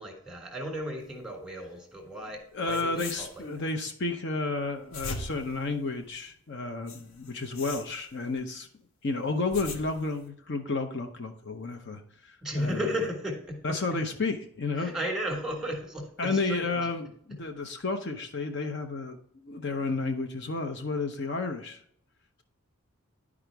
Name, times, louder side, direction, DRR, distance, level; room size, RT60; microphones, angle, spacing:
voice 1, 0.0-3.4 12.4-13.8 14.8-16.9 17.3-17.4, equal, ahead, 1 dB, 1.5 m, -34 dB
sound 1, 2.4-2.5 2.7-3.7 4.7-6.3 6.9-8.4 9.2-10.3, left 3 dB, 70° left, 1.1 m, -42 dB
voice 2, 2.5-8.7 9.0-12.8 13.6-14.9 16.2-19.2 19.4-21.8, left 3 dB, 55° left, 5 dB, 0.7 m, -31 dB
10.5 x 4.9 x 3.4 m, 0.65 s
head